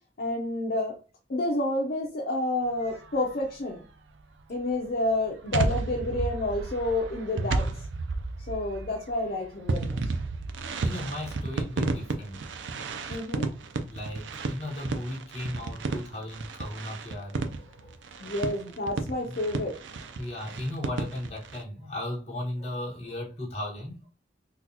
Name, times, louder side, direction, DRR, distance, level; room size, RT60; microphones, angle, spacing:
voice 1, 0.2-1.0 1.3-3.8 4.5-7.7 8.5-10.1 13.1-13.5 18.2-19.8, left 1 dB, 55° left, 0.6 m, -29 dB
sound 1, 2.9-3.4 4.7-21.6, right 3 dB, 80° right, 0.5 m, -32 dB
voice 2, 10.8-12.4 13.9-18.3 19.2-19.4 20.2-24.1, left 1 dB, 35° left, 1.4 m, -36 dB
3.9 x 2.3 x 2.8 m
head